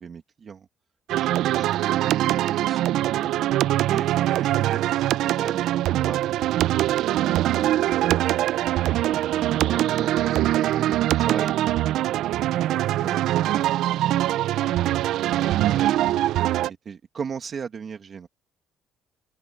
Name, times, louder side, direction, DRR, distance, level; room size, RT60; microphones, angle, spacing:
voice 1, 0.0-0.7 1.1-2.6 3.2-3.3 3.8-5.1 5.4-6.5 9.3-10.4 10.7-12.0 13.0-13.2 13.5-13.6 15.3-15.9 16.8-18.3, right 6 dB, 35° right, 1.4 m, -37 dB
sound 1, 1.1-16.7, right 14 dB, 75° right, 0.3 m, -23 dB
voice 2, 2.5-3.0, right 1 dB, 5° right, 6.7 m, -52 dB
open air
cardioid pair, 145°, 0 cm